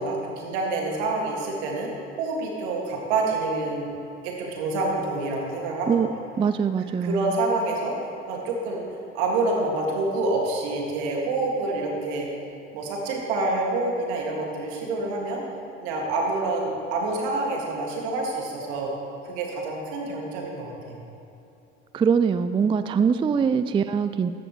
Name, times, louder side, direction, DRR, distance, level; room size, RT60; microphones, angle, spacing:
voice 1, 0.0-1.9 2.2-3.9 4.2-6.0 7.0-7.9 8.3-8.9 9.1-12.3 12.7-15.4 15.8-18.9 19.2-21.0, right 2 dB, 70° right, -1 dB, 2.1 m, -27 dB
voice 2, 6.4-7.4 21.9-24.3, right 6 dB, 15° right, 11 dB, 0.3 m, -23 dB
14.0 x 11.0 x 3.1 m, 2.9 s
hypercardioid pair, 60°, 34 cm